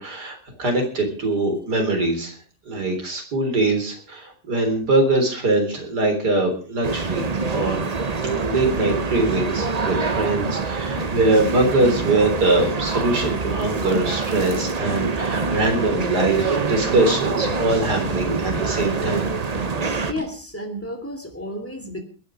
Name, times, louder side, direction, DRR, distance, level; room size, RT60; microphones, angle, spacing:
voice 1, 0.0-2.3 2.7-7.8 8.2-19.3, right 2 dB, 80° right, 4 dB, 4.4 m, -22 dB
sound 1, 6.8-20.1, right 4 dB, 30° right, 0.8 m, -25 dB
sound 2, 8.2-8.4 8.8-8.9 9.3-9.5 9.8-10.0 10.4-10.6 10.9-11.1 11.4-11.6 12.0-12.2 12.6-12.7 13.1-13.3 13.7-13.8 14.3-14.5 14.8-15.0 15.3-15.5 15.9-16.0 16.4-16.5 16.9-17.1 17.4-17.6 17.9-18.1 18.5-18.7 19.0-19.2 19.5-19.7 20.1-20.3, equal, 45° right, 4.1 m, -35 dB
voice 2, 20.1-22.0, left 1 dB, 10° left, 4 dB, 3.0 m, -32 dB
22.0 x 9.5 x 5.0 m, 0.39 s
omnidirectional pair, 1.7 m